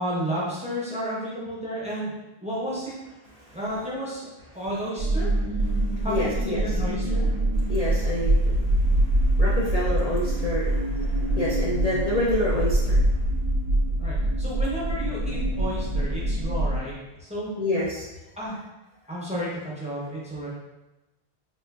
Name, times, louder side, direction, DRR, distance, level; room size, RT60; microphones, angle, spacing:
voice 1, 0.0-2.1 2.4-2.9 3.5-4.3 4.5-5.6 6.0-7.3 14.0-17.5 18.4-18.6 19.1-20.5, equal, 10° right, -7 dB, 0.6 m, -32 dB
sound 1, 5.0-16.8, right 1 dB, 55° right, 0.5 m, -24 dB
voice 2, 5.8-6.6 7.7-13.1 17.6-18.1, left 1 dB, 50° left, -7 dB, 0.5 m, -28 dB
3.7 x 2.5 x 2.3 m, 1.1 s
omnidirectional pair, 1.0 m